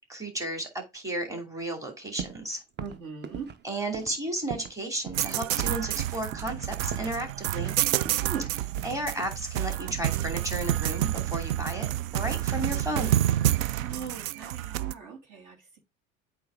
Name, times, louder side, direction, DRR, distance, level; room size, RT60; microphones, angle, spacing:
voice 1, 0.1-2.6 3.6-7.8 8.8-11.9 12.1-13.2, right 1 dB, 10° right, 2.8 m, -33 dB
sound 1, 2.2-2.5 2.8-4.8 5.1-5.3 5.7-6.0 6.3-6.6 6.9-7.8 8.1-9.4 10.4-11.3 11.6-12.0, right 7 dB, 25° right, 0.8 m, -41 dB
voice 2, 2.8-3.5 8.2-8.5 13.7-15.8, right 6 dB, 50° right, 2.6 m, -39 dB
sound 2, 5.1-14.9, right 13 dB, 75° right, 0.6 m, -28 dB
8.5 x 3.4 x 4.9 m
hypercardioid pair, 70°, 40 cm